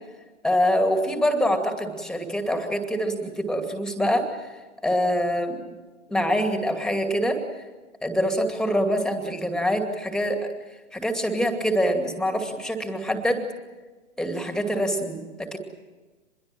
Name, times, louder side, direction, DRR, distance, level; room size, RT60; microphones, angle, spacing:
voice 1, 0.4-4.5 4.8-5.7 6.1-7.4 8.0-10.4 10.9-13.4 14.2-15.6, equal, ahead, 6 dB, 2.4 m, -25 dB
25.0 x 22.0 x 7.6 m, 1.3 s
figure-of-eight pair, 110°, 38 cm